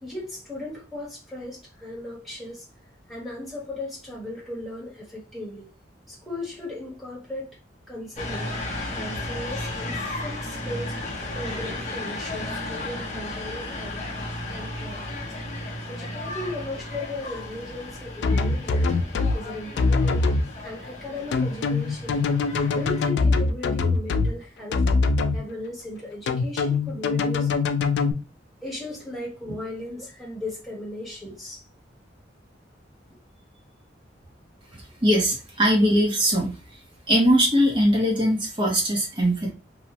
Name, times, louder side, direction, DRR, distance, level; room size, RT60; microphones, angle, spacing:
voice 1, 0.0-2.7 3.1-5.7 6.1-7.5 7.9-11.0 11.3-14.0 14.5-15.2 15.9-18.9 19.3-20.3 20.6-22.2 22.7-24.8 25.3-27.5 28.6-31.6 34.7-34.8, left 1 dB, ahead, 1.1 m, -37 dB
sound 1, 8.2-23.1, left 1 dB, 35° left, 0.7 m, -34 dB
sound 2, 18.2-19.4 19.8-20.4 21.3-24.3 24.7-25.4 26.3-28.1, left 4 dB, 65° left, 0.3 m, -22 dB
voice 2, 35.0-36.5 37.1-39.5, equal, 25° right, 0.9 m, -20 dB
2.7 x 2.1 x 2.8 m
head